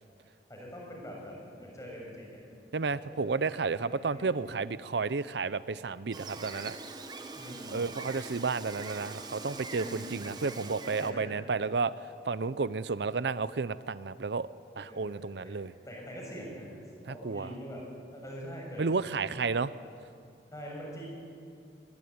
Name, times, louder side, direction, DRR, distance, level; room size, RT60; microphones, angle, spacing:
voice 1, 0.5-2.4 2.8-4.5 7.3-7.8 9.7-10.4 11.0-11.3 14.8-15.5 15.8-16.7 17.0-19.6 20.5-21.1, equal, 20° left, -2 dB, 6.9 m, -44 dB
voice 2, 2.7-6.8 7.7-11.9 12.3-14.5 14.8-15.7 17.0-17.5 18.8-19.7, right 4 dB, 75° right, 16 dB, 0.6 m, -32 dB
Gull seagull, 6.1-11.1, right 3 dB, 25° right, 1.4 m, -43 dB
22.0 x 21.0 x 9.6 m, 2.4 s
head